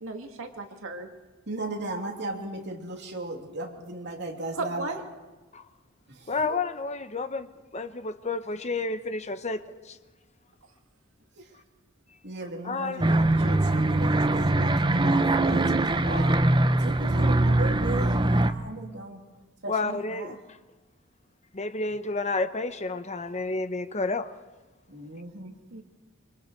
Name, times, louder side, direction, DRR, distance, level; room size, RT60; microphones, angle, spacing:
voice 1, 0.0-1.1 4.6-5.0 11.4-11.5 25.7-25.8, right 3 dB, 75° right, 2.2 m, -35 dB
voice 2, 1.5-4.9 6.4-6.6 12.2-19.2 19.6-20.4 24.9-25.5, right 2 dB, 55° right, 3.1 m, -36 dB
voice 3, 6.3-9.6 9.9-10.0 12.6-13.0 16.1-16.2 19.7-20.4 21.5-24.3, left 3 dB, 35° left, 1.0 m, -30 dB
sound 1, 13.0-18.5, right 2 dB, 20° right, 0.8 m, -22 dB
28.0 x 25.0 x 4.6 m
head